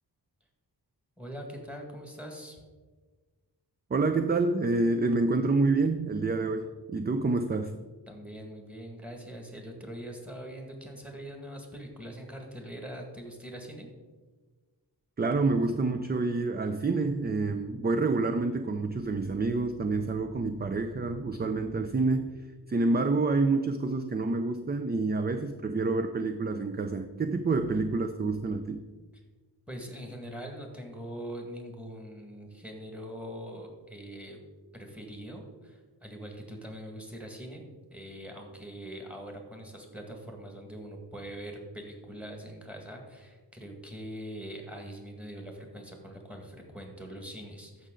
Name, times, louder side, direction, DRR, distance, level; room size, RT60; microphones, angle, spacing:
voice 1, 1.2-2.6 8.1-13.9 29.7-34.4 34.7-37.6 37.9-47.9, equal, 5° right, 2 dB, 1.8 m, -42 dB
voice 2, 3.9-7.7 15.2-22.4 22.7-28.8, right 3 dB, 25° right, 8 dB, 0.4 m, -28 dB
13.5 x 5.7 x 3.8 m, 1.4 s
wide cardioid pair, 110°, 42 cm